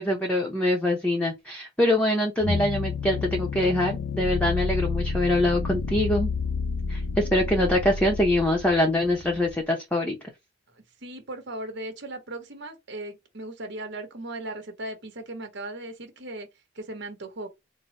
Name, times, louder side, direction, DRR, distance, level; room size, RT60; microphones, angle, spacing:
voice 1, 0.0-6.3 6.9-10.2, left 1 dB, 5° left, 0.8 m, -24 dB
sound 1, 2.4-9.6, left 4 dB, 75° left, 0.5 m, -30 dB
voice 2, 11.0-16.5 16.8-17.5, right 1 dB, 60° right, 1.1 m, -37 dB
3.8 x 2.1 x 4.1 m
head